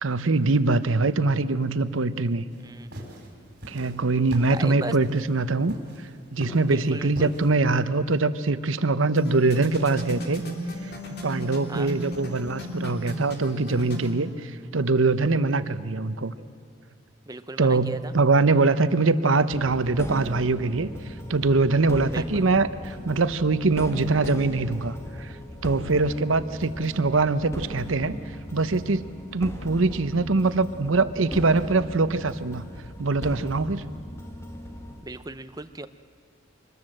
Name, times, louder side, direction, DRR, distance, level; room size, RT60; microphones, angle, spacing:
voice 1, 0.0-2.4 3.7-5.8 6.3-10.4 11.2-16.3 17.6-20.9 21.3-25.3 25.6-28.1 28.5-32.7 33.0-33.8, right 3 dB, 85° right, 13 dB, 0.9 m, -23 dB
sound 1, 2.5-7.5, equal, 50° right, 4.6 m, -41 dB
voice 2, 2.6-2.9 4.5-5.0 6.7-7.3 11.7-11.9 17.3-18.1 22.1-22.5 35.0-35.9, right 2 dB, 20° right, 11 dB, 0.7 m, -37 dB
sound 2, 9.2-14.1, right 1 dB, 50° left, 3.3 m, -35 dB
sound 3, 19.5-35.0, equal, 15° left, 1.6 m, -38 dB
24.5 x 21.0 x 7.9 m, 2.5 s
head